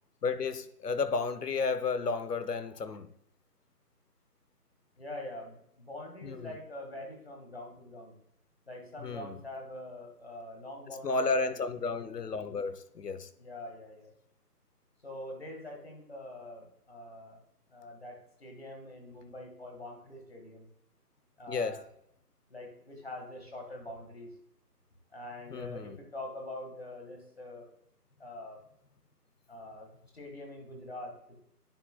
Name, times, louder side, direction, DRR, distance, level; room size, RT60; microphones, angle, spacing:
voice 1, 0.2-3.1 6.2-6.5 9.0-9.4 11.0-13.3 21.5-21.8 25.5-26.0, left 4 dB, 75° left, 12 dB, 0.8 m, -32 dB
voice 2, 5.0-8.1 8.7-11.6 13.4-14.1 15.0-17.4 17.7-20.7 21.4-21.8 22.5-24.3 25.1-27.7 28.2-28.6 29.5-31.4, left 1 dB, 40° left, 2 dB, 1.6 m, -44 dB
10.0 x 6.6 x 2.2 m, 0.73 s
figure-of-eight pair, 180°, 47 cm